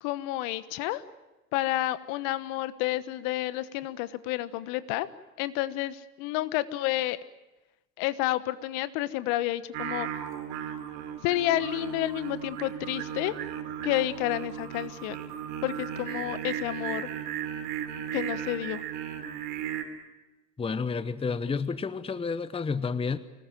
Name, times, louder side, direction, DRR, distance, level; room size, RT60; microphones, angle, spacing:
voice 1, 0.0-1.0 1.5-5.1 5.4-7.2 8.0-10.1 11.2-13.3 13.8-15.2 15.6-17.1 18.1-18.8, left 15 dB, 55° left, 15 dB, 1.3 m, -30 dB
Singing, 9.7-19.8, right 9 dB, 50° right, 3.7 m, -36 dB
voice 2, 20.6-23.2, left 5 dB, 10° left, 15 dB, 1.0 m, -30 dB
25.0 x 19.5 x 9.1 m, 1.1 s
hypercardioid pair, 90°, 48 cm